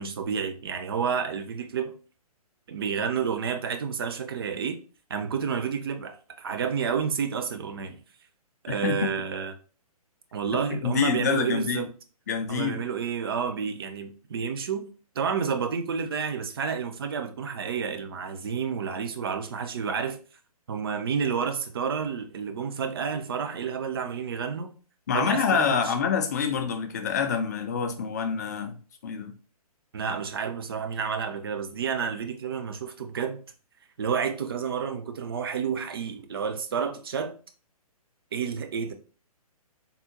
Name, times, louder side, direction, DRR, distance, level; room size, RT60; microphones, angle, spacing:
voice 1, 0.0-1.9 2.7-4.8 5.1-8.0 8.6-9.5 10.3-11.9 12.5-14.9 15.2-20.2 20.7-24.7 25.1-25.9 29.9-33.4 34.0-37.3 38.3-38.9, right 6 dB, 40° right, 0.4 m, -30 dB
voice 2, 8.7-9.1 10.8-11.9 12.3-12.9 25.1-28.8 29.0-29.3, left 6 dB, 25° left, 0.3 m, -26 dB
3.6 x 2.0 x 2.7 m
figure-of-eight pair, 130°, 19 cm